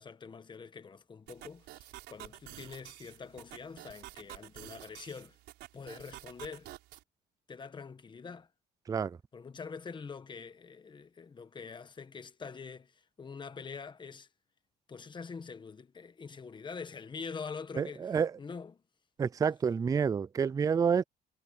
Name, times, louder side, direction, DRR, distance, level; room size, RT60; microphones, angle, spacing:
voice 1, 0.0-5.4 5.7-6.7 7.5-8.5 9.3-14.3 14.9-18.8, left 5 dB, 25° left, 1.4 m, -45 dB
sound 1, 1.3-7.0, right 17 dB, 85° right, 5.3 m, -50 dB
voice 2, 8.9-9.2 17.8-18.3 19.2-21.0, right 6 dB, 20° right, 0.4 m, -29 dB
cardioid pair, 110°, 17 cm